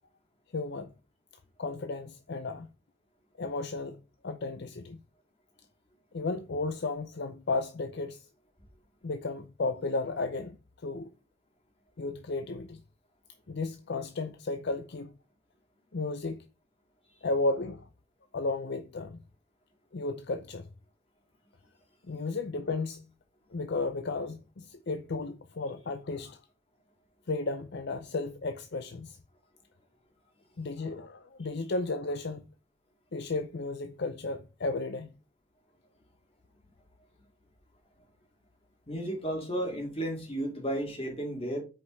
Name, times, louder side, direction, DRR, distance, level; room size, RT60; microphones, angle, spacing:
voice 1, 0.5-0.9 1.6-2.7 3.4-4.0 4.2-5.0 6.1-8.3 9.0-10.6 10.8-11.1 12.0-12.8 13.5-15.1 15.9-16.5 17.2-17.9 18.3-19.2 19.9-20.7 22.1-23.0 23.5-26.4 27.3-29.2 30.6-32.5 33.1-35.1, left 3 dB, 50° left, 0.5 m, -33 dB
voice 2, 38.9-41.6, right 1 dB, 25° left, 2.6 m, -33 dB
8.4 x 5.1 x 4.0 m
head